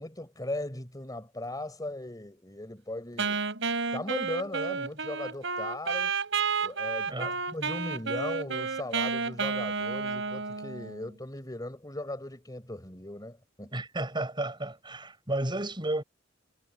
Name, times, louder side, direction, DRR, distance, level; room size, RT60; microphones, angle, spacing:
voice 1, 0.0-3.4 3.9-6.1 6.6-13.7, left 1 dB, 20° left, 4.7 m, -38 dB
Wind instrument woodwind instrument, 3.2-11.1, right 5 dB, 70° right, 4.7 m, -31 dB
voice 2, 13.7-16.0, right 1 dB, 25° right, 6.1 m, -32 dB
head